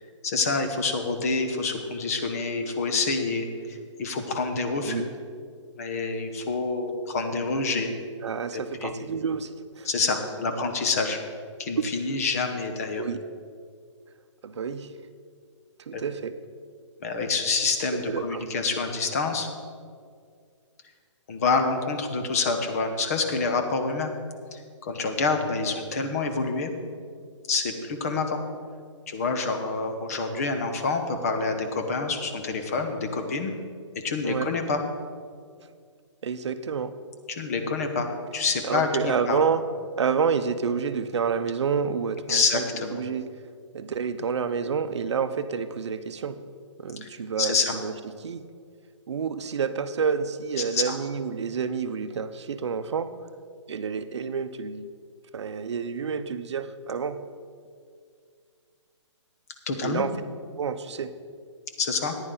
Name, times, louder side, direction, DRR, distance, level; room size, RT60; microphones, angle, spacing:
voice 1, 0.2-5.1 5.8-7.9 8.5-8.9 9.8-11.2 11.6-13.0 15.9-16.0 17.0-19.5 21.3-24.1 24.5-26.7 27.5-28.4 29.1-33.5 34.0-34.8 37.3-38.1 38.3-38.9 39.3-39.4 42.3-43.0 47.0-47.1 47.4-47.7 50.7-51.0 59.7-60.0 61.8-62.2, left 4 dB, 30° left, 5 dB, 0.9 m, -27 dB
voice 2, 8.2-9.9 11.7-11.8 13.0-13.2 14.4-14.9 15.9-16.3 18.1-18.4 34.2-34.5 36.2-36.9 38.6-39.6 40.0-42.6 42.9-43.3 43.7-46.4 46.8-47.9 48.2-48.5 49.1-53.1 53.7-54.9 55.3-57.2 59.8-60.1 60.6-61.1, right 6 dB, 60° right, 11 dB, 0.7 m, -29 dB
14.0 x 9.8 x 3.9 m, 2.1 s
hypercardioid pair, 170°, 16 cm